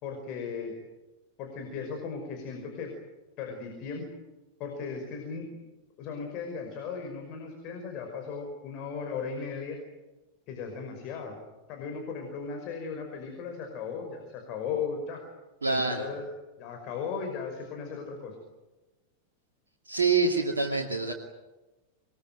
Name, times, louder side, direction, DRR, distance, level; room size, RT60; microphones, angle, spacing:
voice 1, 0.0-0.8 1.4-2.9 3.4-4.1 4.6-5.5 6.0-9.8 10.5-11.4 11.7-15.2 15.7-16.2 16.6-18.4, left 5 dB, 40° left, 3 dB, 5.5 m, -36 dB
voice 2, 15.6-16.1 19.9-21.1, right 4 dB, 75° right, 0 dB, 2.4 m, -26 dB
26.5 x 21.5 x 9.3 m, 1.1 s
figure-of-eight pair, 90°, 0 cm